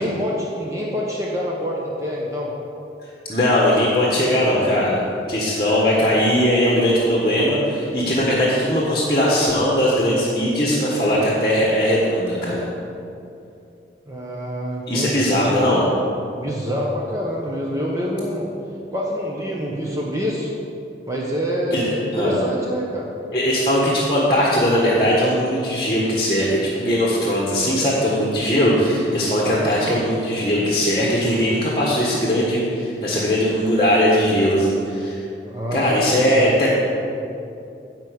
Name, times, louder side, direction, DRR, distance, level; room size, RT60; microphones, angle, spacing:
voice 1, 0.0-2.5 14.1-15.4 16.4-18.5 18.9-20.5 21.1-23.1 29.8-30.0 35.4-36.5, equal, 15° right, -4 dB, 0.9 m, -26 dB
voice 2, 3.3-12.6 14.9-15.8 21.7-22.4 23.3-35.2 35.7-36.7, equal, 25° left, -5 dB, 1.4 m, -19 dB
11.0 x 4.6 x 8.0 m, 2.7 s
head